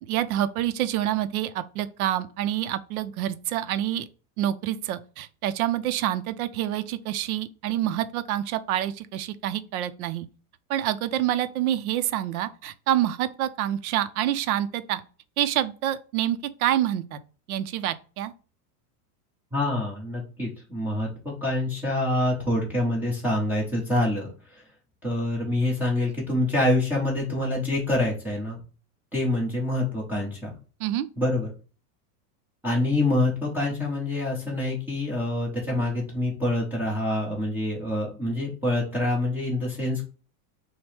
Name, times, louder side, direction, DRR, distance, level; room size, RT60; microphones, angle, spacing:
voice 1, 0.1-4.1 4.4-10.3 10.7-15.0 15.4-17.2 17.5-18.3 30.8-31.1, right 12 dB, 70° right, 0.5 m, -27 dB
voice 2, 19.5-24.3 25.0-28.6 29.1-30.5 31.2-31.5 32.6-40.0, left 1 dB, 5° right, 0.8 m, -26 dB
6.0 x 2.1 x 3.2 m
supercardioid pair, 165°, 45 cm